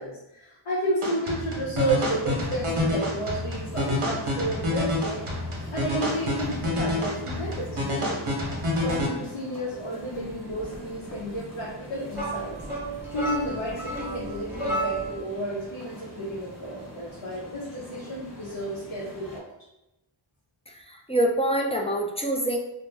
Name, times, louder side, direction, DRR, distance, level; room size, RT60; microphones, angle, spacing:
voice 1, 0.0-5.2 5.7-8.3 8.8-12.6 13.1-19.5, right 1 dB, 85° left, -6 dB, 0.7 m, -32 dB
sound 1, 1.0-9.1, left 1 dB, 75° right, 0.8 m, -28 dB
sound 2, 1.8-19.4, equal, 30° left, 0.9 m, -44 dB
sound 3, 12.1-15.3, right 2 dB, 5° right, 0.9 m, -31 dB
voice 2, 20.7-22.6, right 1 dB, 15° left, -1 dB, 0.3 m, -26 dB
2.4 x 2.0 x 3.3 m, 0.91 s
wide cardioid pair, 45°, 50 cm